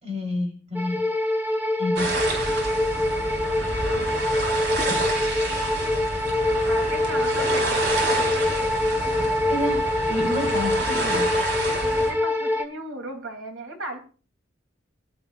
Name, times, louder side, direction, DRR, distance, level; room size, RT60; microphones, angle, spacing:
voice 1, 0.0-1.0 1.8-2.2 9.5-11.3, left 1 dB, 35° right, 2 dB, 4.9 m, -29 dB
sound 1, 0.7-12.6, left 1 dB, 10° right, 1.2 m, -25 dB
sound 2, 2.0-12.1, right 2 dB, 60° right, 4.3 m, -29 dB
voice 2, 3.5-4.1 6.7-8.1 11.8-14.0, right 2 dB, 85° right, 3 dB, 3.2 m, -36 dB
22.0 x 12.0 x 2.6 m, 0.37 s
head